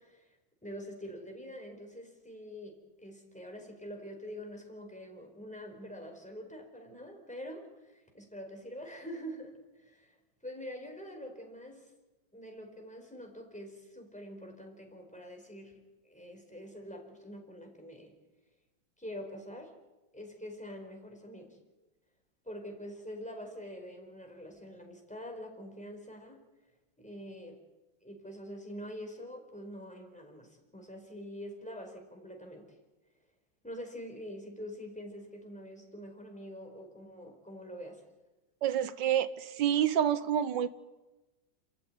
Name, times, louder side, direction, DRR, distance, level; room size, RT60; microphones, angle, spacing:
voice 1, 0.0-10.2 10.4-11.9 12.3-18.1 19.0-19.7 20.1-21.6 22.4-26.4 27.0-27.6 28.0-32.7 33.6-38.0, equal, 5° left, 2 dB, 4.6 m, -45 dB
voice 2, 38.6-40.7, right 10 dB, 70° right, 13 dB, 1.7 m, -28 dB
29.0 x 14.5 x 9.3 m, 1.1 s
omnidirectional pair, 2.0 m